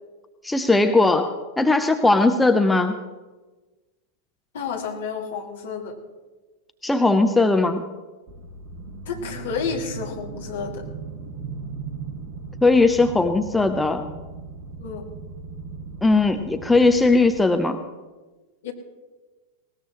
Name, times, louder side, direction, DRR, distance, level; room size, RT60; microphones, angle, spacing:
voice 1, 0.4-1.3 1.6-3.0 6.8-7.8 12.6-14.0 16.0-17.8, left 3 dB, 5° left, 7 dB, 0.8 m, -18 dB
voice 2, 4.5-6.0 9.1-10.9 14.8-15.0 18.6-18.7, left 6 dB, 60° left, 1 dB, 2.5 m, -30 dB
sound 1, 8.3-17.4, right 4 dB, 35° right, 1.8 m, -37 dB
20.0 x 18.5 x 3.1 m, 1.2 s
figure-of-eight pair, 90°, 0 cm